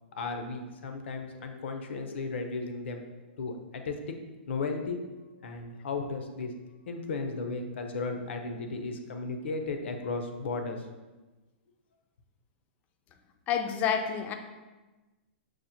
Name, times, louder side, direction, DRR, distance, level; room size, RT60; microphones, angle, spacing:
voice 1, 0.2-3.0 3.3-4.0 4.5-5.0 5.4-6.5 6.9-10.8, left 3 dB, 75° left, 5 dB, 0.6 m, -35 dB
voice 2, 13.5-14.4, left 7 dB, 25° left, 6 dB, 0.3 m, -28 dB
6.2 x 2.1 x 2.8 m, 1.2 s
hypercardioid pair, 145°, 6 cm